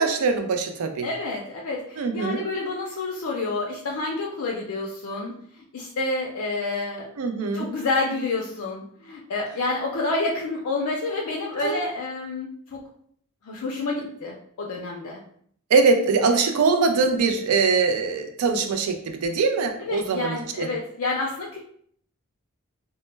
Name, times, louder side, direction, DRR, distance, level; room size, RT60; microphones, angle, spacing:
voice 1, 0.0-1.1 2.0-2.4 7.2-7.7 11.6-11.8 15.7-20.7, right 4 dB, 75° right, 6 dB, 0.4 m, -22 dB
voice 2, 1.0-7.1 7.5-12.8 13.4-15.2 19.8-21.6, left 3 dB, 75° left, -2 dB, 0.4 m, -29 dB
2.1 x 2.0 x 3.1 m, 0.63 s
head